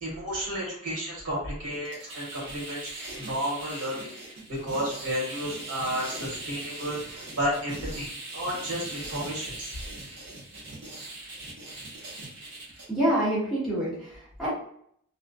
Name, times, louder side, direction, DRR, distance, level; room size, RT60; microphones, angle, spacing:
voice 1, 0.0-4.1 4.5-9.8, equal, 85° right, -4 dB, 1.2 m, -32 dB
sound 1, 1.7-12.9, right 2 dB, 50° right, 0.6 m, -40 dB
voice 2, 12.9-14.5, right 1 dB, ahead, -10 dB, 0.9 m, -27 dB
2.4 x 2.1 x 2.5 m, 0.66 s
head